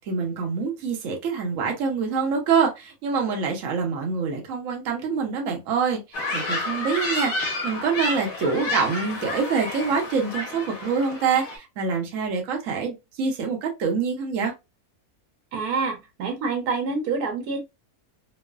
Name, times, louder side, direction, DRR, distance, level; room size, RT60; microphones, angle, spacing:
voice 1, 0.0-14.5, right 5 dB, 65° right, 1.0 m, -26 dB
sound 1, 6.1-11.6, left 2 dB, 70° left, 1.1 m, -30 dB
voice 2, 15.5-17.6, right 4 dB, 90° right, 1.3 m, -27 dB
3.0 x 2.0 x 2.2 m
omnidirectional pair, 1.6 m